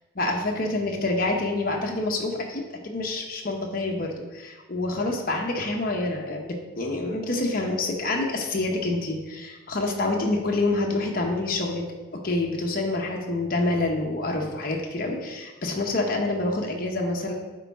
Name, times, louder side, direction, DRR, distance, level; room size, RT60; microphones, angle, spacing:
voice 1, 0.2-11.8 12.1-17.3, left 2 dB, 45° left, 1 dB, 0.9 m, -27 dB
8.1 x 4.6 x 3.6 m, 1.2 s
head